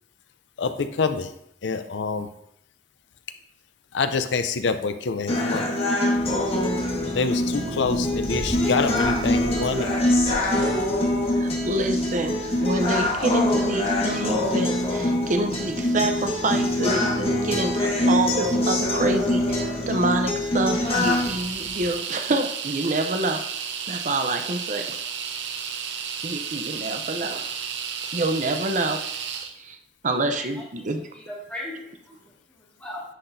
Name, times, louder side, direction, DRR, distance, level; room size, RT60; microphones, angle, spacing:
voice 1, 0.6-1.3 1.6-2.3 3.9-5.6 7.1-9.9, left 4 dB, 85° left, 9 dB, 0.6 m, -26 dB
sound 1, 5.3-21.3, left 1 dB, 35° left, 1.6 m, -24 dB
sound 2, 6.1-21.9, equal, 60° left, 2.0 m, -39 dB
voice 2, 11.3-23.4 23.9-24.8 26.2-27.6 28.1-29.0 29.6-29.8 30.0-31.0, right 2 dB, 45° right, 6 dB, 0.7 m, -27 dB
sound 3, 20.8-29.5, right 7 dB, 80° right, 0.7 m, -32 dB
voice 3, 30.0-30.6 31.1-32.0 32.3-33.0, left 1 dB, 10° left, -6 dB, 2.0 m, -38 dB
9.8 x 5.9 x 2.7 m, 0.74 s
head